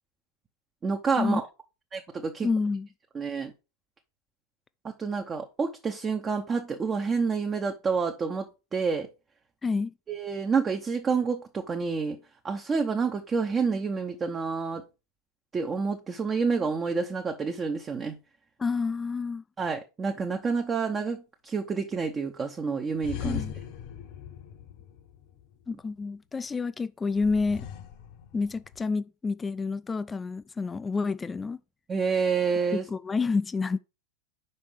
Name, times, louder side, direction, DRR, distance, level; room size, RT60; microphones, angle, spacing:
voice 1, 0.8-1.4 1.9-2.5 3.1-3.5 4.8-9.1 10.1-12.2 12.4-14.8 15.5-18.2 19.6-23.4 31.9-32.9, right 5 dB, 20° right, 0.7 m, -28 dB
voice 2, 2.4-2.9 9.6-9.9 18.6-19.4 23.2-23.5 25.7-27.7 28.3-31.6 32.7-33.8, left 4 dB, 15° left, 0.3 m, -29 dB
sound 1, 23.0-25.7 27.2-28.9, left 8 dB, 45° left, 0.9 m, -39 dB
5.5 x 5.2 x 4.9 m
figure-of-eight pair, 90°, 0 cm